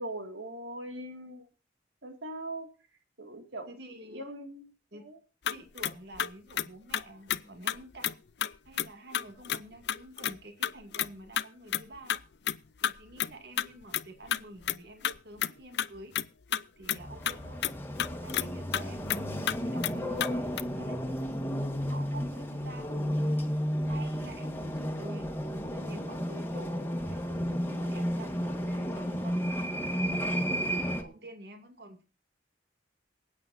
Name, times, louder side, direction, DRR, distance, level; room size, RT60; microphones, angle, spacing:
voice 1, 0.0-1.5 2.0-2.7 3.2-3.7 4.1-4.7 4.9-5.2, right 1 dB, 80° right, 6 dB, 2.3 m, -40 dB
voice 2, 3.7-4.2 4.9-5.0 5.5-8.2 8.6-12.2 12.8-16.1 16.8-17.7 18.2-21.0 21.8-23.4 23.8-25.3 25.7-29.4 30.4-32.0, right 1 dB, 60° right, 6 dB, 2.5 m, -48 dB
sound 1, 5.5-7.0 7.3-7.4 7.7-7.8 8.0-8.1 8.4-8.5 8.8-8.9 9.1-9.6 9.9-10.3 10.6-11.1 11.4-11.5 11.7-12.2 12.5-12.6 12.8-12.9 13.2-13.3 13.6-13.7 13.9-14.4 14.6-14.8 15.0-15.9 16.2-16.3 16.5-17.4 17.6-17.7 18.0-18.5 18.7-18.8 19.1-19.2 19.5-19.6 19.8-19.9 20.2-20.3 20.6-20.7, left 9 dB, 65° left, 0.6 m, -30 dB
sound 2, 16.9-31.0, equal, 10° left, 1.8 m, -32 dB
27.5 x 9.2 x 2.7 m, 0.33 s
head